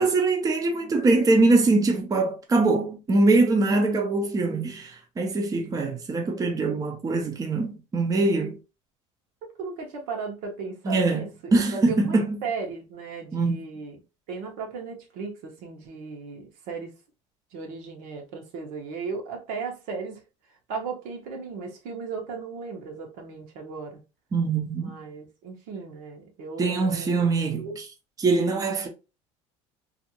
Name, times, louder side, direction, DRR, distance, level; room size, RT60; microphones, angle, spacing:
voice 1, 0.0-8.6 10.8-11.2 11.5-12.4 13.3-13.6 24.3-24.9 26.6-27.7 28.2-28.9, right 3 dB, 25° right, 0.6 m, -23 dB
voice 2, 9.6-14.0 14.3-16.9 17.5-20.2 20.7-24.0 24.8-27.8, right 5 dB, 70° right, 0.9 m, -36 dB
2.5 x 2.4 x 2.8 m
supercardioid pair, 100°, 15 cm